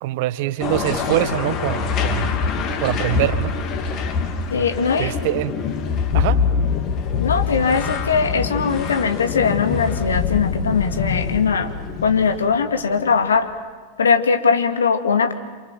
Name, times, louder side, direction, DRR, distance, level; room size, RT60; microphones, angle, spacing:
voice 1, 0.0-2.3 2.8-3.6 5.0-5.5 6.1-6.4, right 15 dB, 50° right, 13 dB, 1.3 m, -23 dB
sound 1, 0.6-13.1, left 6 dB, 35° left, 3.2 m, -24 dB
voice 2, 4.5-5.1 6.1-6.3 7.2-11.7 12.0-13.5 14.0-15.3, left 5 dB, 70° left, 7 dB, 2.4 m, -20 dB
28.5 x 26.0 x 7.6 m, 1.4 s
figure-of-eight pair, 90°, 0 cm